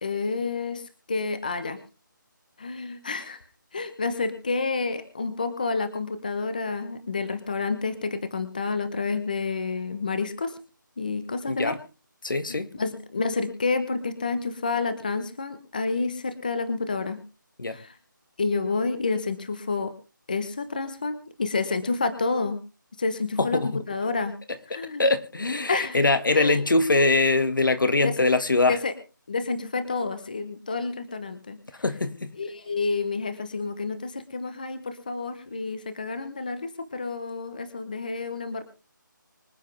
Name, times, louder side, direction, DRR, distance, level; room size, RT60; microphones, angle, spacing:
voice 1, 0.0-1.8 2.6-3.4 3.7-10.6 11.0-11.8 12.5-17.2 17.7-17.9 18.4-19.9 20.3-22.6 23.0-23.6 23.9-24.3 24.7-25.1 25.7-26.0 26.3-26.6 28.0-28.1 28.7-28.9 29.3-31.6 32.4-38.6, left 4 dB, 25° left, 1.1 m, -29 dB
voice 2, 11.5-11.8 12.2-12.7 17.6-17.8 23.4-23.8 24.7-28.8 31.8-32.4, left 2 dB, 75° left, 2.0 m, -23 dB
25.0 x 8.3 x 3.4 m
figure-of-eight pair, 180°, 11 cm